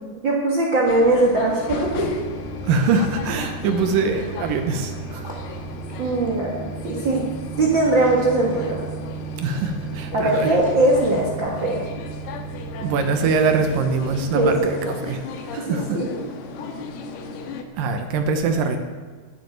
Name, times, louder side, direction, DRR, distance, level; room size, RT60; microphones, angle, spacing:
voice 1, 0.2-2.1 6.0-7.3 7.6-8.8 10.1-11.9 14.3-14.7 15.6-16.1, right 2 dB, 55° right, -2 dB, 1.3 m, -20 dB
sound 1, 0.9-17.6, left 4 dB, 75° left, 2.9 m, -35 dB
sound 2, 1.8-14.6, right 6 dB, ahead, 2.9 m, -35 dB
voice 2, 2.6-5.3 9.4-10.5 12.8-15.2 15.5-16.0 17.7-18.8, right 4 dB, 70° right, 6 dB, 2.3 m, -23 dB
13.0 x 6.9 x 9.1 m, 1.5 s
omnidirectional pair, 4.8 m